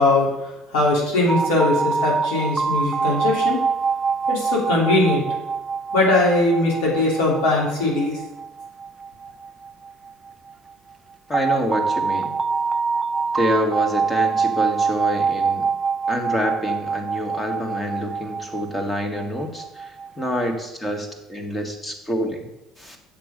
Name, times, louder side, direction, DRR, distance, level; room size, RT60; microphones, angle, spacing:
voice 1, 0.0-3.6 4.3-5.2 5.9-8.2, left 2 dB, 85° left, -3 dB, 3.4 m, -20 dB
sound 1, 1.3-10.1 11.3-20.5, right 5 dB, 25° right, 0.4 m, -25 dB
voice 2, 11.3-12.3 13.3-15.7 16.1-22.5 22.8-23.0, equal, 15° left, 4 dB, 1.7 m, -27 dB
7.8 x 6.1 x 5.2 m, 0.99 s
supercardioid pair, 100°, 0 cm